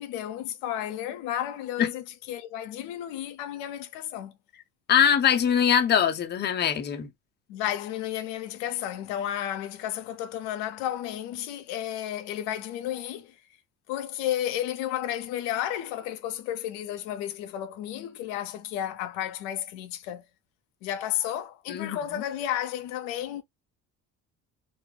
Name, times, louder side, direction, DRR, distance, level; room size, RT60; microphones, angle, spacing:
voice 1, 0.0-4.4 7.5-13.4 13.9-20.2 20.8-23.4, left 11 dB, 90° left, 0.5 m, -32 dB
voice 2, 4.9-7.1 21.7-22.0, left 8 dB, 35° left, 0.5 m, -22 dB
2.3 x 2.0 x 3.0 m
supercardioid pair, 90°, 32 cm